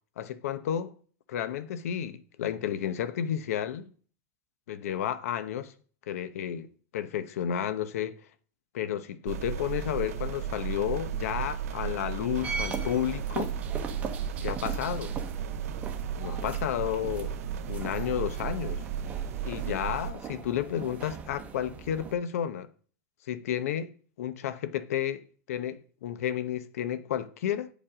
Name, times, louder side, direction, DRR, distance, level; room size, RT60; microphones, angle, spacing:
voice 1, 0.2-0.9 1.3-3.9 4.7-5.7 6.1-8.2 8.7-13.6 14.4-15.2 16.2-17.4 17.7-18.8 19.4-22.7 23.3-23.9 24.2-25.2 25.5-27.7, left 10 dB, 80° left, 0.8 m, -32 dB
sound 1, 9.3-20.1, right 8 dB, 85° right, 0.7 m, -34 dB
sound 2, 12.3-22.1, right 5 dB, 20° right, 0.8 m, -40 dB
8.8 x 5.2 x 4.9 m
supercardioid pair, 170°, 8 cm